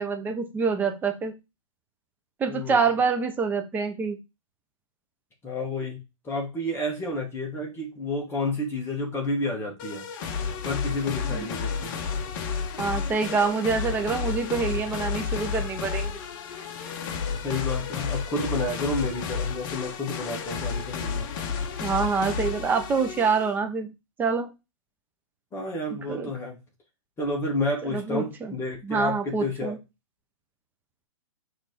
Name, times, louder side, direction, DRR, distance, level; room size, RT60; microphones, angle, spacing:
voice 1, 0.0-1.3 2.4-4.2 11.3-11.5 12.8-16.2 21.8-23.9 24.2-24.5 25.9-26.3 27.9-28.5 28.8-29.8, right 5 dB, 10° right, 0.8 m, -26 dB
voice 2, 2.5-2.9 5.4-10.1 10.6-11.9 17.4-21.3 25.5-26.6 27.2-29.8, left 2 dB, 15° left, 1.8 m, -30 dB
sound 1, 9.8-23.5, left 6 dB, 40° left, 1.1 m, -31 dB
6.1 x 3.5 x 4.5 m
hypercardioid pair, 145°, 18 cm